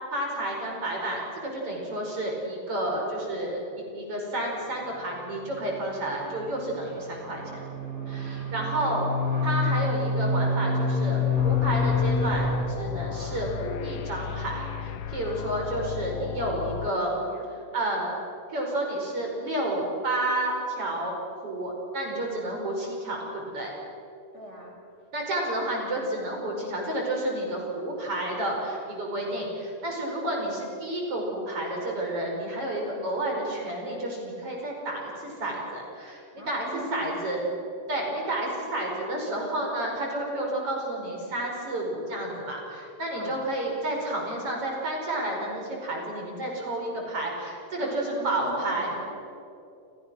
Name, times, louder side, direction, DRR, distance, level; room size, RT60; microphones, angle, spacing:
voice 1, 0.1-7.6 8.1-9.0 9.4-17.1 17.7-18.1 18.5-23.7 25.1-36.6 36.9-37.4 37.9-48.9, right 1 dB, 40° right, -1 dB, 6.1 m, -30 dB
sound 1, 5.6-12.7, left 3 dB, 50° left, 9.4 m, -27 dB
sound 2, 11.4-16.9, left 8 dB, 75° left, 2.4 m, -35 dB
voice 2, 16.8-17.5 24.3-24.7 36.4-37.1 43.1-43.5 47.8-49.0, equal, 20° left, -1 dB, 5.2 m, -42 dB
29.5 x 29.0 x 6.4 m, 2.8 s
omnidirectional pair, 4.0 m